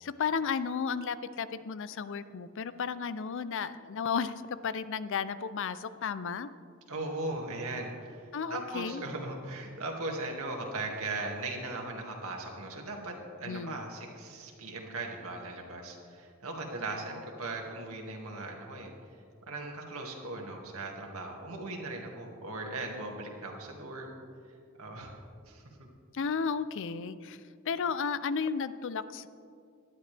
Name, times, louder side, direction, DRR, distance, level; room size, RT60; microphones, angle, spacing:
voice 1, 0.0-6.5 8.3-9.0 13.4-13.8 26.1-27.4 27.7-29.3, left 6 dB, 60° left, 14 dB, 0.5 m, -33 dB
voice 2, 6.9-18.9 19.5-24.2 24.8-25.1 25.5-25.9, right 2 dB, 80° right, 1 dB, 2.2 m, -38 dB
18.0 x 12.0 x 3.4 m, 2.4 s
head